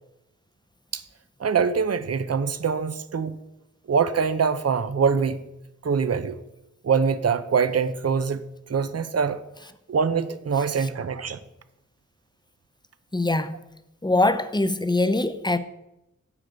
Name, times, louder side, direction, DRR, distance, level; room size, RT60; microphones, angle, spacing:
voice 1, 1.4-3.4 3.9-5.4 5.8-6.4 6.8-9.4 9.9-11.4, right 6 dB, 50° right, 0.7 m, -24 dB
voice 2, 13.1-13.6 14.0-15.6, left 2 dB, 15° left, 0.7 m, -22 dB
10.0 x 5.0 x 8.0 m
wide cardioid pair, 90°, 31 cm